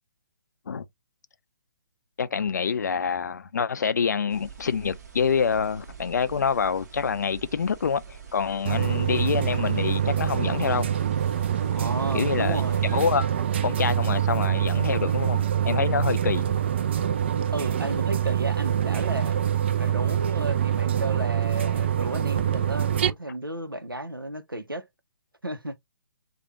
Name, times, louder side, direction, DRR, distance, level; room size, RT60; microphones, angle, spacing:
voice 1, 2.2-10.9 12.1-13.3 13.6-16.4, left 6 dB, 55° left, 0.4 m, -26 dB
sound 1, 4.3-13.1, right 8 dB, 50° right, 1.1 m, -46 dB
sound 2, 8.7-23.1, right 10 dB, 30° right, 0.3 m, -25 dB
voice 2, 11.7-12.9 17.5-19.4 19.8-24.9 25.4-25.8, right 1 dB, 90° right, 0.6 m, -33 dB
3.2 x 2.2 x 2.6 m
figure-of-eight pair, 135°, 11 cm